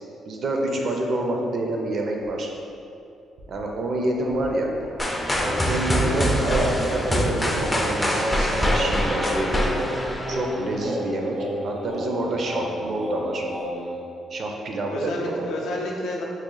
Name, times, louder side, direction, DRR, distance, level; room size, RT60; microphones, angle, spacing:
voice 1, 0.3-2.5 3.5-4.7 5.4-9.7 10.3-11.3 11.6-13.5 14.3-15.5, right 2 dB, 55° right, 1 dB, 0.4 m, -27 dB
voice 2, 0.8-1.2 14.9-16.2, left 1 dB, 80° left, -2 dB, 0.5 m, -31 dB
sound 1, 2.2-2.3 2.7-2.8 3.4-3.6 4.0-7.8 8.2-8.6, right 1 dB, 75° right, 0.8 m, -38 dB
sound 2, 5.0-10.9, equal, 15° left, 0.4 m, -25 dB
Singing, 5.4-14.0, equal, 90° right, 1.2 m, -31 dB
3.1 x 2.3 x 3.7 m, 2.6 s
cardioid pair, 90°, 0 cm